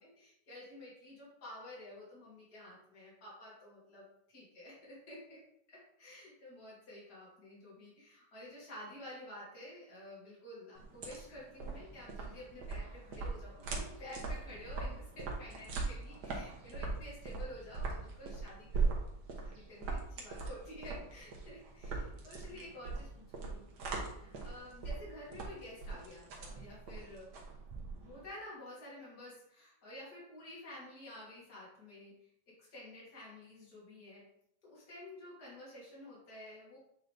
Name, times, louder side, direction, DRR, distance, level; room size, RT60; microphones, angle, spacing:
voice 1, 0.0-5.4 5.7-19.0 19.4-27.3 28.0-32.1 32.6-34.2 34.6-36.8, left 1 dB, 50° left, -7 dB, 3.0 m, -51 dB
sound 1, 10.8-28.2, right 4 dB, 90° right, 2.0 m, -40 dB
8.2 x 3.8 x 3.3 m, 0.74 s
omnidirectional pair, 2.2 m